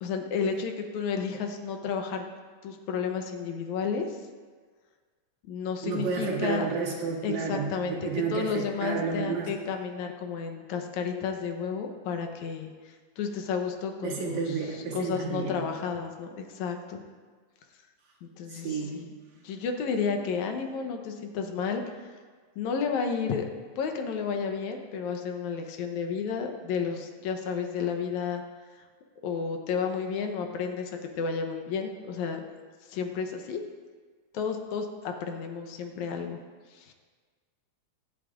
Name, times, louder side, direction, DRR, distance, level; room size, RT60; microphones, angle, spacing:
voice 1, 0.0-2.3 2.6-4.2 5.4-6.7 7.2-14.6 14.9-17.0 18.2-19.1 19.4-22.1 22.6-23.5 23.8-28.4 29.2-32.5 32.9-33.6 34.3-36.4 36.7-36.9, left 6 dB, 85° left, 4 dB, 2.2 m, -32 dB
voice 2, 5.8-9.5 14.0-15.6 18.5-19.1, right 5 dB, 75° right, -4 dB, 3.2 m, -31 dB
22.0 x 8.4 x 2.5 m, 1.5 s
omnidirectional pair, 3.3 m